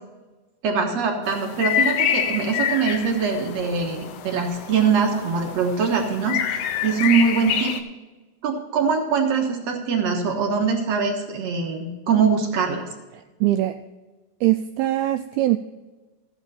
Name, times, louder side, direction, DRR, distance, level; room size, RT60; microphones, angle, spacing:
voice 1, 0.6-7.7 8.4-12.9, right 5 dB, 60° right, 2 dB, 1.8 m, -23 dB
sound 1, 1.3-7.8, left 9 dB, 80° left, 2.8 m, -27 dB
voice 2, 13.1-13.8 14.4-15.6, right 15 dB, 85° right, 8 dB, 2.2 m, -22 dB
14.5 x 8.8 x 4.3 m, 1.2 s
omnidirectional pair, 4.8 m